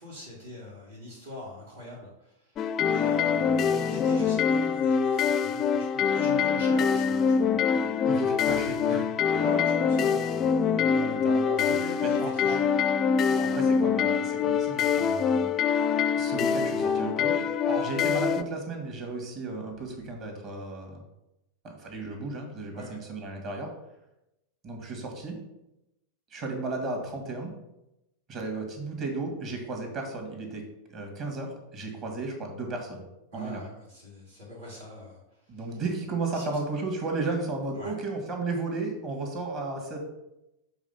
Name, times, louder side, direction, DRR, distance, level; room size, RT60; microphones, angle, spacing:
voice 1, 0.0-7.9 9.3-10.8 11.6-12.6 13.2-13.4 17.7-17.9 22.7-23.0 33.3-35.8 36.3-36.5 37.8-37.9, left 1 dB, 70° right, -8 dB, 2.6 m, -42 dB
sound 1, 2.6-18.4, left 6 dB, 30° left, 0.4 m, -25 dB
voice 2, 8.0-9.1 10.7-12.6 13.4-15.5 16.2-17.4 17.7-21.0 21.6-23.7 24.6-25.4 26.3-27.5 28.3-30.6 30.9-33.1 33.3-33.6 35.5-40.0, right 3 dB, 40° right, 2 dB, 2.0 m, -34 dB
7.2 x 3.6 x 5.5 m, 0.89 s
figure-of-eight pair, 90°, 0 cm